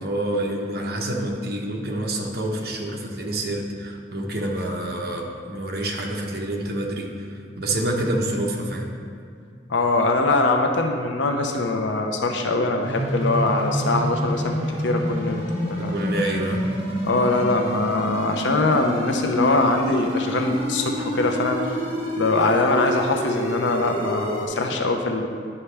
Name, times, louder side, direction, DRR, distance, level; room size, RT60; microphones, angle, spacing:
voice 1, 0.0-8.9 15.8-16.7, right 1 dB, 55° right, 0 dB, 0.9 m, -27 dB
voice 2, 9.7-15.9 17.0-21.8 22.1-25.3, left 2 dB, 85° left, 3 dB, 0.7 m, -22 dB
sound 1, 12.8-24.5, equal, 35° right, 1.9 m, -28 dB
9.7 x 5.8 x 3.4 m, 2.3 s
head